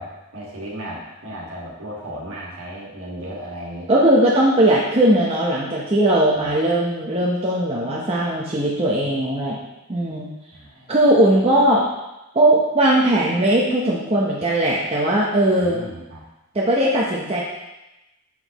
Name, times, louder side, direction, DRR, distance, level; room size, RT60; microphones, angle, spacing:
voice 1, 0.0-3.9 6.3-6.5 10.5-11.1 15.6-16.2, equal, 60° right, -4 dB, 1.8 m, -35 dB
voice 2, 3.9-9.6 9.9-10.3 10.9-11.8 12.3-15.8 16.5-17.4, right 1 dB, 25° right, -5 dB, 0.8 m, -18 dB
7.2 x 6.3 x 3.0 m, 0.97 s
head